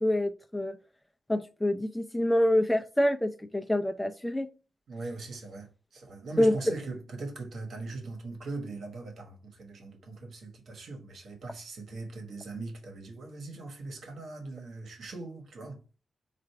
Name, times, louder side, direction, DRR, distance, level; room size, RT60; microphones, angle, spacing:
voice 1, 0.0-0.7 1.3-4.5 6.4-6.5, left 1 dB, 5° left, 0.5 m, -26 dB
voice 2, 4.9-15.8, right 3 dB, 80° right, 1.2 m, -40 dB
4.2 x 2.5 x 4.7 m
wide cardioid pair, 115°, 0 cm